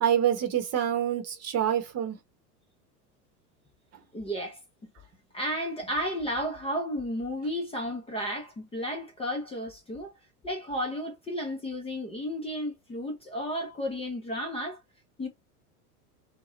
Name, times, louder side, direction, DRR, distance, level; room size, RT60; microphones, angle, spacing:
voice 1, 0.0-2.2, right 9 dB, 35° right, 1.0 m, -26 dB
voice 2, 4.1-4.6 5.3-10.1 10.4-14.8 15.2-15.3, equal, 10° left, 0.8 m, -33 dB
2.8 x 2.1 x 3.2 m
figure-of-eight pair, 85°, 46 cm